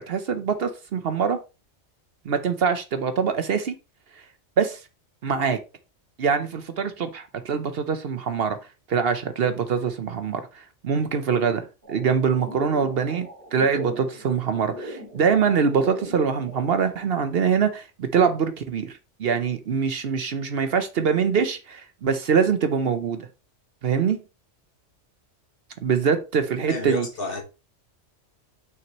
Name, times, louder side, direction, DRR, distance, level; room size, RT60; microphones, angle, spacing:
voice 1, 0.0-1.4 2.3-3.7 4.6-4.8 5.2-5.6 6.2-8.6 8.9-23.2 23.8-24.2 25.8-27.1, right 6 dB, 60° right, 0.9 m, -24 dB
sound 1, 11.8-16.9, equal, 40° right, 2.2 m, -40 dB
voice 2, 26.6-27.4, left 3 dB, 50° left, 1.6 m, -30 dB
6.1 x 5.9 x 2.9 m
omnidirectional pair, 1.2 m